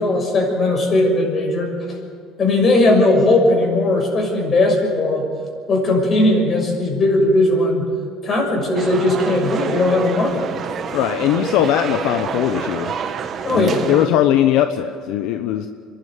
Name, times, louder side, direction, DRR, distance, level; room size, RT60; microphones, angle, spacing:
voice 1, 0.0-1.7 2.4-5.3 5.7-7.8 8.2-10.4 13.4-13.8, left 2 dB, 40° left, 1 dB, 6.7 m, -17 dB
sound 1, 8.7-14.1, right 6 dB, 45° right, 1.5 m, -28 dB
voice 2, 10.9-12.9 13.5-15.7, left 11 dB, 75° left, 8 dB, 0.9 m, -19 dB
27.0 x 11.5 x 9.5 m, 2.2 s
supercardioid pair, 110°, 0 cm